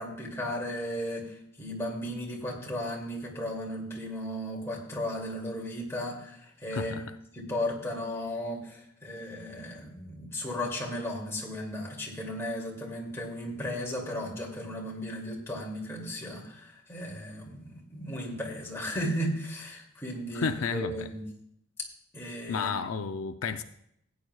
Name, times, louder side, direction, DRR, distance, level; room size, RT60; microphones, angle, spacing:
voice 1, 0.0-7.0 7.3-21.2 22.1-22.7, equal, 10° left, 2.4 m, -35 dB
voice 2, 6.7-7.1 20.3-21.1 22.5-23.6, left 5 dB, 75° left, 0.5 m, -31 dB
17.0 x 9.4 x 2.3 m
head